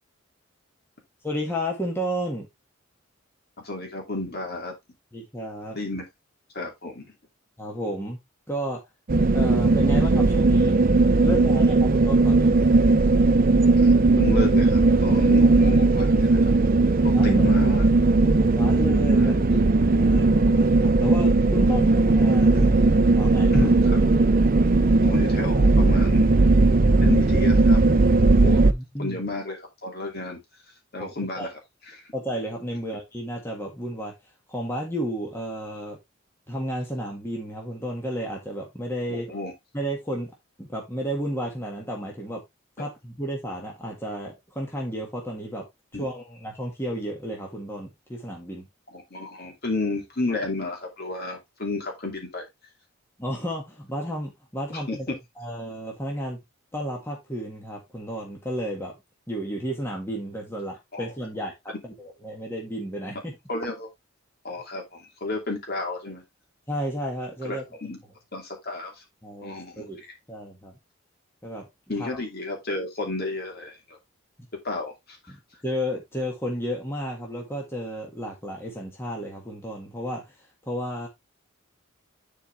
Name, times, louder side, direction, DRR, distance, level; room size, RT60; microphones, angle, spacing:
voice 1, 1.2-2.5 5.1-5.8 7.6-8.2 8.5-8.8 9.3-10.8 11.2-12.5 17.1-17.6 18.4-22.8 23.2-23.7 28.4-29.2 31.0-31.5 32.1-34.1 34.5-36.0 36.5-39.3 39.7-40.3 40.6-42.4 42.8-45.7 45.9-48.7 53.2-55.1 55.4-56.4 56.7-59.0 59.3-63.4 66.7-67.6 69.2-70.7 71.4-71.6 72.0-72.1 75.3-75.4 75.6-80.4 80.7-81.1, equal, 10° left, 1.9 m, -32 dB
voice 2, 3.6-4.7 5.7-6.1 6.5-7.1 11.3-11.7 13.8-16.5 17.0-17.8 19.1-19.3 22.5-22.7 23.5-24.0 25.0-26.4 27.0-27.8 28.4-28.6 29.0-30.4 30.9-31.5 39.1-39.5 45.9-46.1 48.9-52.5 54.7-55.0 60.9-61.1 63.5-63.9 64.4-66.2 67.4-68.0 68.3-68.9 69.4-69.9 71.9-73.8 74.6-75.2, left 2 dB, 45° left, 2.7 m, -32 dB
sound 1, 9.1-28.7, right 3 dB, 40° right, 0.5 m, -18 dB
11.0 x 4.7 x 3.3 m
head